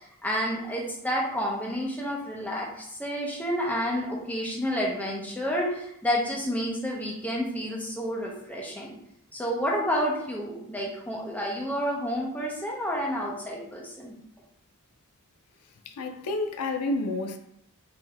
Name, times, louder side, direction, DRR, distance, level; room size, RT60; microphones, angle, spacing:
voice 1, 0.0-9.0 9.3-14.1, equal, 5° left, 0.6 m, -30 dB
voice 2, 15.9-17.4, left 2 dB, 90° left, 0.4 m, -29 dB
3.5 x 2.6 x 3.4 m
head